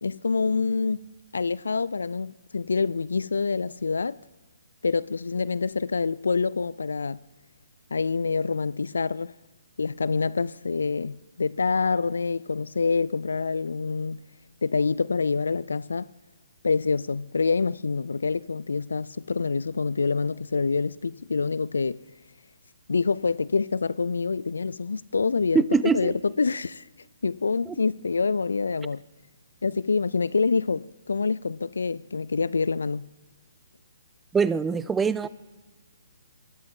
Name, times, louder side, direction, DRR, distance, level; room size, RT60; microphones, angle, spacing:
voice 1, 0.0-1.0 1.3-4.2 4.8-7.2 7.9-9.3 9.8-14.2 14.6-16.1 16.6-22.0 22.9-25.6 25.9-26.8 27.2-29.0 29.6-33.1, left 4 dB, 75° left, 0.3 m, -26 dB
voice 2, 25.5-26.1 34.3-35.3, right 5 dB, 10° right, 0.4 m, -23 dB
20.5 x 12.5 x 3.7 m
figure-of-eight pair, 135°, 0 cm